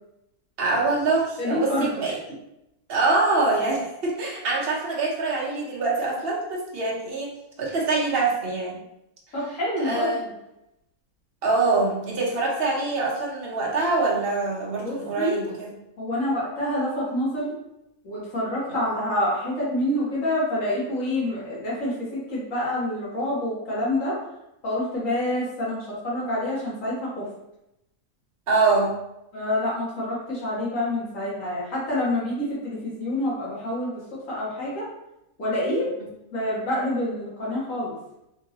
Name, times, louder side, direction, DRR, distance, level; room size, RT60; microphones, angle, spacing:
voice 1, 0.6-2.2 2.9-7.3 7.6-8.8 9.8-10.2 11.4-15.7 28.5-28.9, right 3 dB, 45° right, -3 dB, 0.9 m, -24 dB
voice 2, 1.4-1.9 9.3-10.3 14.8-15.4 16.0-17.5 18.0-24.2 24.6-27.3 29.3-33.9 34.3-34.9 35.4-35.9 36.3-37.9, left 1 dB, 60° left, -7 dB, 1.7 m, -27 dB
3.7 x 2.8 x 2.8 m, 0.86 s
omnidirectional pair, 1.6 m